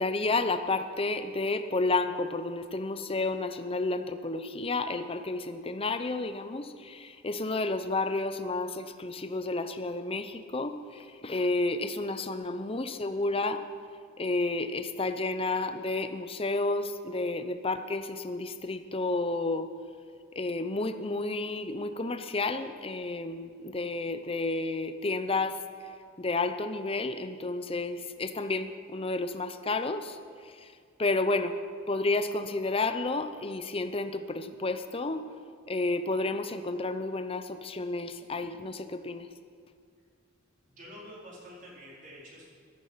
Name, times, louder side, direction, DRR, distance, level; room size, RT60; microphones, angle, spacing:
voice 1, 0.0-13.6 14.2-19.7 20.4-25.6 26.2-30.7 31.0-31.6 31.9-35.2 35.7-39.3, left 2 dB, 25° left, 10 dB, 0.7 m, -31 dB
voice 2, 40.7-42.5, equal, 40° right, -5 dB, 4.2 m, -48 dB
15.0 x 13.0 x 5.7 m, 2.2 s
head